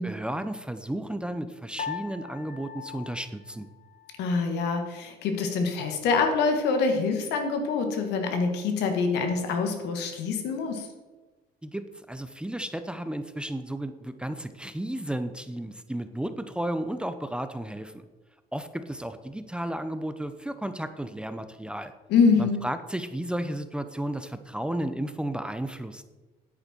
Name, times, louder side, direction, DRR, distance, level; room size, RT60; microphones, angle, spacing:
voice 1, 0.0-3.7 11.6-18.0 18.5-21.9 22.4-26.0, right 1 dB, 5° right, 10 dB, 0.6 m, -33 dB
Piano, 1.8-4.3, left 7 dB, 55° left, 1.6 m, -40 dB
voice 2, 4.2-10.9 22.1-22.6, left 4 dB, 85° left, 5 dB, 1.8 m, -25 dB
9.8 x 8.7 x 4.4 m, 1.2 s
cardioid pair, 110°, 17 cm